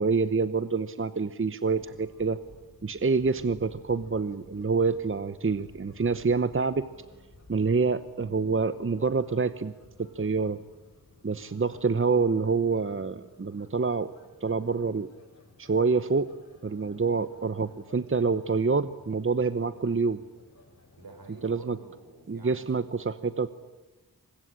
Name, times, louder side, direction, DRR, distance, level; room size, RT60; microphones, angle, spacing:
voice 1, 0.0-2.4 2.8-6.9 7.5-9.7 10.0-10.6 11.2-14.1 14.4-15.1 15.6-16.3 16.6-20.2 21.4-21.8 22.3-23.5, right 4 dB, 35° right, 14 dB, 0.9 m, -27 dB
sound 1, 1.6-21.6, left 2 dB, 45° left, 5.0 m, -56 dB
voice 2, 21.0-22.9, right 3 dB, 70° right, 5 dB, 6.1 m, -49 dB
24.0 x 21.0 x 10.0 m, 1.1 s
wide cardioid pair, 60°, 37 cm